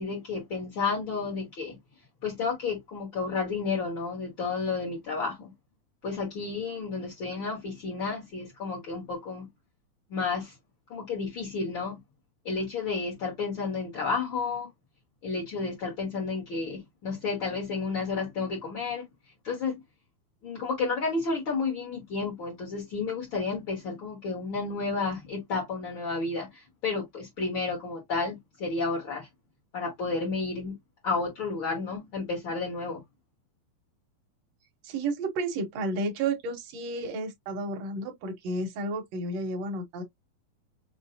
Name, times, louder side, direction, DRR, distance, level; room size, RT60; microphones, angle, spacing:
voice 1, 0.0-1.8 2.2-5.5 6.0-9.5 10.1-10.5 10.9-12.0 12.4-14.7 15.2-19.1 19.4-19.8 20.4-29.3 29.7-30.8 31.0-33.0, left 4 dB, 60° left, 1.3 m, -31 dB
voice 2, 34.8-40.0, right 2 dB, 70° right, 1.6 m, -32 dB
6.1 x 2.1 x 2.7 m
omnidirectional pair, 4.2 m